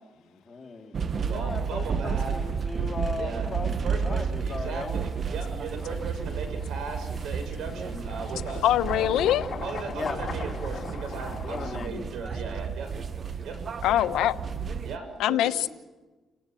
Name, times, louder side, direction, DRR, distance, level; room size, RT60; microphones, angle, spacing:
voice 1, 0.2-4.9 9.9-10.2 11.5-12.1, left 3 dB, 30° left, 3 dB, 2.8 m, -37 dB
sound 1, 0.9-15.0, right 6 dB, 45° right, 1.1 m, -32 dB
voice 2, 1.3-2.3 3.1-3.5 3.8-8.7 8.9-9.1 9.6-12.9 13.4-13.6 14.8-15.7, right 4 dB, 75° right, 6 dB, 6.9 m, -37 dB
sound 2, 5.7-11.9, left 5 dB, 45° left, 3.6 m, -40 dB
voice 3, 8.6-9.4 13.8-14.4 15.2-15.7, left 12 dB, 85° left, 12 dB, 1.0 m, -23 dB
29.0 x 18.5 x 7.7 m, 1.2 s
cardioid pair, 90°, 0 cm